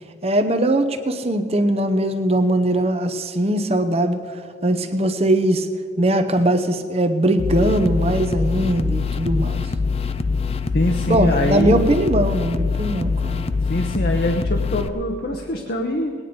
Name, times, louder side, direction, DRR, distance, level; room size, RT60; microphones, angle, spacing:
voice 1, 0.2-4.2 4.6-5.7 6.0-9.7 11.1-13.4, right 1 dB, 30° right, 8 dB, 0.8 m, -20 dB
sound 1, 7.4-14.9, left 4 dB, 30° left, 0.4 m, -24 dB
voice 2, 10.7-11.8 13.7-16.1, left 1 dB, 50° left, 2 dB, 1.0 m, -23 dB
19.5 x 9.8 x 5.2 m, 2.3 s
head